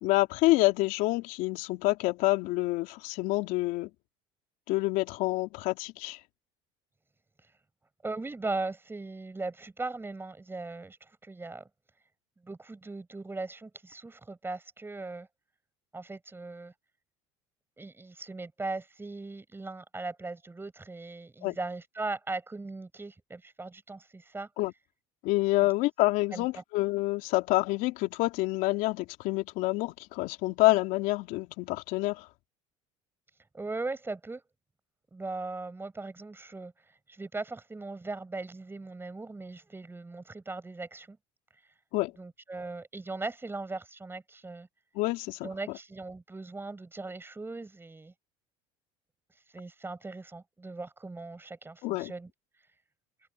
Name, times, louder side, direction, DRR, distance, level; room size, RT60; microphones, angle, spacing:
voice 1, 0.0-3.9 4.7-6.2 21.4-21.6 24.6-24.7 25.2-32.3 41.9-42.1 44.9-45.5 51.8-52.1, left 20 dB, 70° left, 3.4 m, -27 dB
voice 2, 8.0-11.0 11.2-11.7 12.4-15.3 15.9-16.7 17.8-24.5 26.3-26.6 33.5-34.4 35.1-36.7 37.1-41.2 42.2-44.7 45.4-48.1 49.5-52.3, right 3 dB, 15° right, 6.5 m, -39 dB
supercardioid pair, 85°, 14 cm